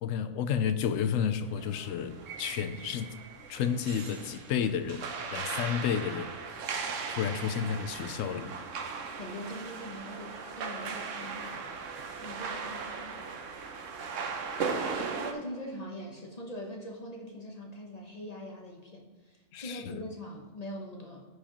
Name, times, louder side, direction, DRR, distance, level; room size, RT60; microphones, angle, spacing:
voice 1, 0.0-3.1 3.5-6.3 7.1-8.6 19.5-20.0, left 8 dB, 90° left, 11 dB, 1.0 m, -31 dB
sound 1, 1.5-15.3, right 5 dB, 75° right, 1.1 m, -38 dB
voice 2, 9.1-11.7 12.1-13.3 14.9-21.3, equal, 35° left, -1 dB, 1.0 m, -42 dB
13.5 x 4.8 x 2.9 m, 1.3 s
omnidirectional pair, 1.3 m